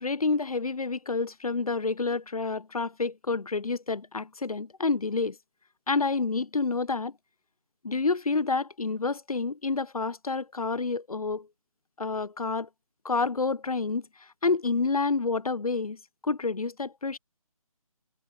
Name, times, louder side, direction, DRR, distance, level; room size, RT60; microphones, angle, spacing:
voice 1, 0.0-5.4 5.9-7.1 7.8-11.5 12.0-12.7 13.0-14.1 14.4-17.2, left 4 dB, 75° left, 0.6 m, -28 dB
figure-of-eight pair, 150°, 19 cm